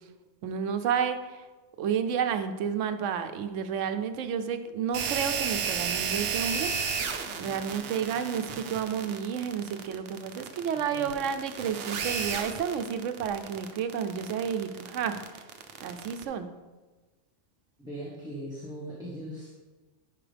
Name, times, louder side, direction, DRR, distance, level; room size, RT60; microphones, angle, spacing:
voice 1, 0.4-1.4 1.8-7.0 7.4-15.2 15.8-16.5, right 7 dB, 85° right, 9 dB, 1.0 m, -31 dB
sound 1, 4.9-16.2, right 6 dB, 60° right, 0.8 m, -33 dB
voice 2, 10.7-11.2 17.8-19.6, right 1 dB, 5° right, -7 dB, 1.3 m, -40 dB
10.5 x 5.2 x 3.4 m, 1.3 s
omnidirectional pair, 1.2 m